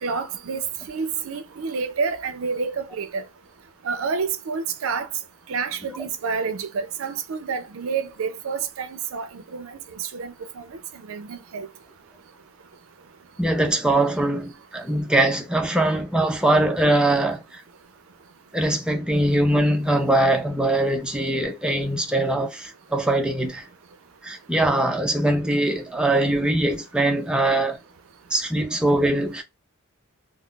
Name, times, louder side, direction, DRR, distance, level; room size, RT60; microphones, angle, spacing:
voice 1, 0.0-3.2 3.8-5.1 5.5-11.7, right 5 dB, 75° right, 0.5 m, -29 dB
voice 2, 13.4-17.6 18.5-23.7 24.2-27.8 28.3-29.4, right 1 dB, 5° right, 0.4 m, -22 dB
2.3 x 2.1 x 3.6 m
head